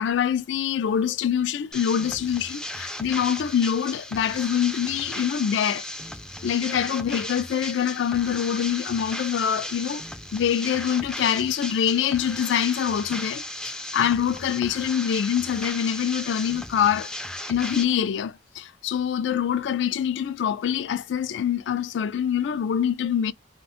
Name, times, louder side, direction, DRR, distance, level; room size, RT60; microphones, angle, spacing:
voice 1, 0.0-5.9 6.4-10.0 10.3-17.1 17.5-23.3, left 8 dB, 80° left, 0.3 m, -25 dB
sound 1, 1.7-17.8, left 1 dB, 5° left, 0.3 m, -36 dB
2.4 x 2.2 x 3.5 m
head